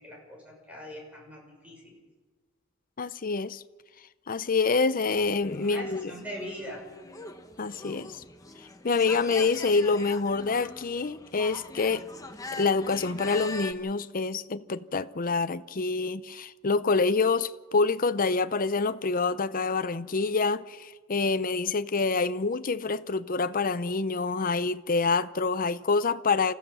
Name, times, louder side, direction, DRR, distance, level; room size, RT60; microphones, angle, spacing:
voice 1, 0.0-2.0 5.6-6.8, equal, 5° right, 6.1 m, -41 dB
voice 2, 3.0-3.6 4.3-6.1 7.6-8.2 8.8-12.1 12.5-26.5, left 4 dB, 40° left, 0.7 m, -27 dB
sound 1, 5.2-13.7, left 2 dB, 15° left, 1.3 m, -42 dB
27.5 x 15.5 x 7.1 m
head